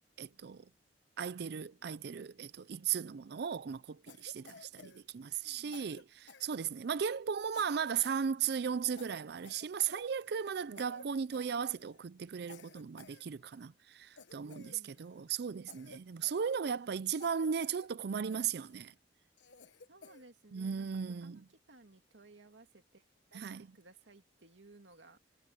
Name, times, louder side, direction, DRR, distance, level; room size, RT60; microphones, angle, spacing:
voice 1, 0.2-0.6 1.2-18.9 20.5-21.4 23.3-23.7, right 7 dB, 65° right, 0.4 m, -36 dB
Cough, 4.1-5.5 5.7-7.0 7.5-8.3 8.5-8.7 8.9-10.5 10.8-11.1 11.3-12.0 12.5-13.7 14.2-15.2 15.7-16.9 17.2-17.9 18.3-18.8 19.4-20.3, left 4 dB, 80° left, 1.3 m, -56 dB
voice 2, 5.2-5.9 14.4-15.3 19.9-25.2, right 2 dB, 85° right, 2.3 m, -60 dB
head